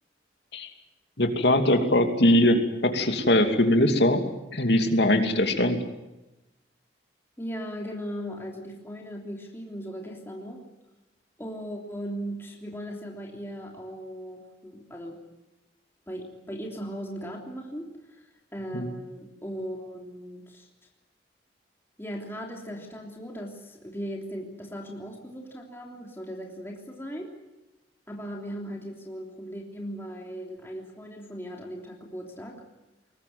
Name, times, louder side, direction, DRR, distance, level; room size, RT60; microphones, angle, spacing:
voice 1, 1.2-4.2 4.5-5.8 18.7-18.9, left 1 dB, 65° left, 5 dB, 2.7 m, -21 dB
voice 2, 7.4-10.6 11.4-15.2 16.1-20.7 22.0-27.3 28.1-32.6, equal, 15° left, 0 dB, 3.3 m, -38 dB
22.5 x 19.5 x 9.4 m, 1.0 s
head